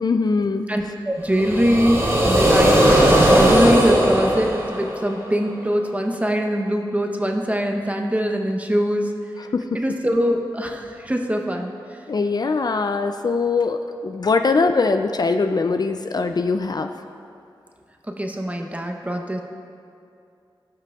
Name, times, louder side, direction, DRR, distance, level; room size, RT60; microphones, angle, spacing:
voice 1, 0.0-0.7 9.5-9.6 12.1-16.9, left 4 dB, 50° left, 7 dB, 0.4 m, -21 dB
voice 2, 0.7-2.0 2.2-9.1 9.7-11.7 18.2-19.4, equal, 15° right, 2 dB, 0.8 m, -22 dB
sound 1, 1.3-5.3, right 1 dB, 35° right, 2.0 m, -17 dB
17.0 x 5.7 x 2.4 m, 2.5 s
wide cardioid pair, 60°, 9 cm